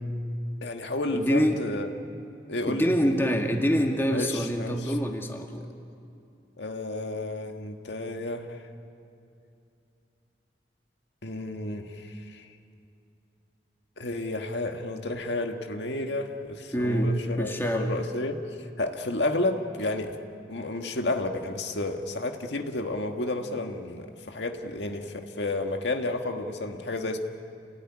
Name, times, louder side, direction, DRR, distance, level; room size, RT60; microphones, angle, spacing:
voice 1, 0.6-1.9 2.5-2.9 4.1-4.9 6.6-8.6 11.2-12.5 14.0-18.4 18.8-20.2 20.5-27.2, left 2 dB, 85° left, 4 dB, 1.8 m, -31 dB
voice 2, 1.1-1.6 2.7-5.6 16.7-17.1 17.4-17.9, equal, 15° left, 2 dB, 2.0 m, -25 dB
29.0 x 19.0 x 10.0 m, 2.6 s
head